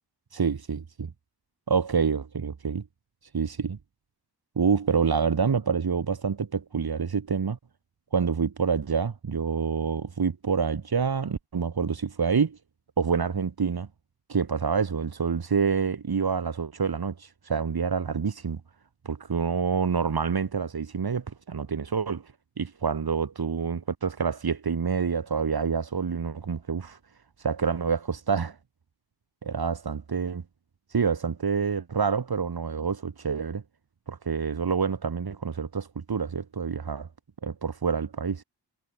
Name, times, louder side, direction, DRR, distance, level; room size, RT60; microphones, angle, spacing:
voice 1, 0.3-1.1 1.7-2.8 3.3-3.8 4.6-7.6 8.1-12.6 13.0-13.9 14.3-18.6 19.0-22.2 22.6-27.0 27.4-28.6 29.4-30.4 30.9-33.6 34.1-37.1 37.4-38.4, right 6 dB, 60° right, 3.4 m, -27 dB
wide cardioid pair, 140°, 42 cm